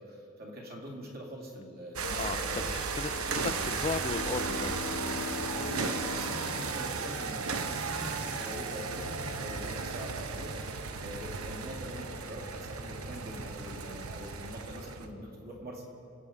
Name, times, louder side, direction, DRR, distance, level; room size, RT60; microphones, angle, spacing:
voice 1, 0.0-2.7 3.8-4.0 5.5-10.6 11.0-15.8, equal, 45° right, -1 dB, 2.5 m, -43 dB
sound 1, 2.0-15.1, right 4 dB, 85° right, 0.9 m, -35 dB
voice 2, 2.1-4.8, left 4 dB, 25° left, 11 dB, 0.3 m, -36 dB
Bowed string instrument, 3.3-7.9, left 4 dB, 85° left, 0.9 m, -42 dB
25.0 x 8.5 x 5.0 m, 2.6 s
head